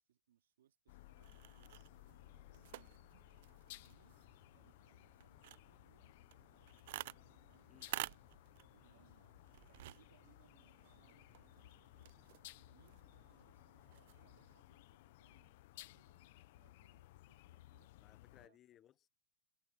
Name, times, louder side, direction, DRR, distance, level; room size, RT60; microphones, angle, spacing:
voice 1, 0.0-4.2 4.5-6.2 6.5-7.0 7.5-9.4 9.8-17.9 18.3-18.6, right 11 dB, 85° right, 3.6 m, -74 dB
sound 1, 0.9-18.5, left 18 dB, 50° left, 0.6 m, -60 dB
sound 2, 1.2-14.6, right 17 dB, 55° right, 0.4 m, -53 dB
voice 2, 18.0-19.1, left 11 dB, 25° left, 0.8 m, -65 dB
supercardioid pair, 160°, 0 cm